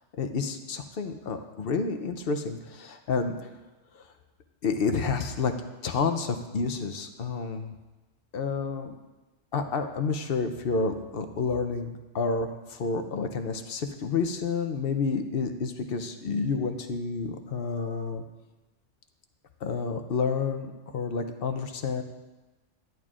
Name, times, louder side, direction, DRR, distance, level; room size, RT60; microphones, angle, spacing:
voice 1, 0.2-3.5 3.9-4.0 4.6-5.5 5.8-7.7 8.3-8.9 9.5-18.2 19.6-22.0, left 4 dB, 55° left, 7 dB, 0.8 m, -29 dB
11.0 x 10.5 x 2.4 m, 1.1 s
omnidirectional pair, 1.3 m